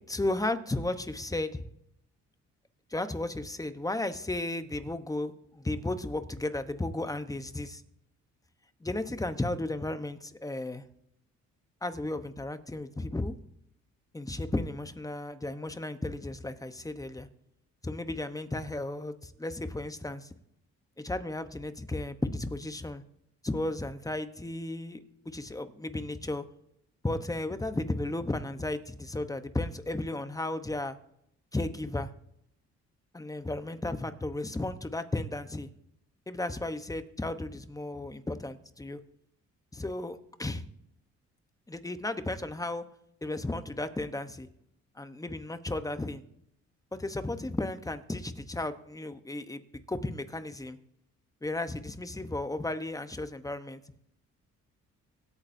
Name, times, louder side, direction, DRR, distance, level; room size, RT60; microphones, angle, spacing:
voice 1, 0.1-1.6 2.9-7.8 8.8-10.8 11.8-13.3 14.1-17.3 17.8-20.3 21.0-23.0 23.4-26.4 27.0-31.0 31.5-32.1 33.1-35.7 36.3-39.0 39.7-40.6 41.7-42.8 43.2-44.5 45.0-46.2 47.0-49.6 49.9-50.8 51.4-53.8, left 2 dB, 10° left, 10 dB, 1.0 m, -34 dB
24.5 x 8.7 x 2.7 m, 0.77 s
cardioid pair, 90°, 30 cm